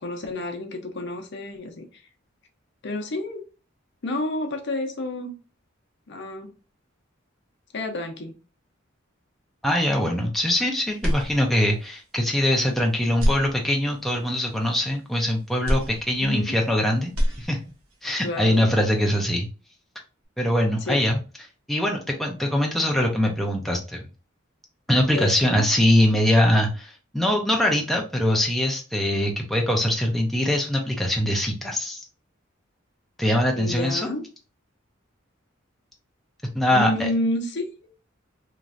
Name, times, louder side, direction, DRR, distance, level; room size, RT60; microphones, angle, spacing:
voice 1, 0.0-2.0 2.8-3.4 4.0-5.3 6.1-6.5 7.7-8.3 16.2-16.5 18.2-18.7 20.8-21.0 25.1-25.7 33.5-34.2 36.7-37.9, left 1 dB, 60° left, 4 dB, 0.6 m, -30 dB
voice 2, 9.6-17.6 18.0-19.5 20.4-21.2 21.7-24.0 24.9-32.0 33.2-34.1 36.5-37.1, left 1 dB, ahead, 0 dB, 0.4 m, -22 dB
sound 1, 11.0-11.9 12.3-12.4 13.1-14.1 15.6-16.7 17.0-18.0, equal, 90° right, 0.9 m, -27 dB
3.0 x 2.5 x 2.4 m, 0.34 s
head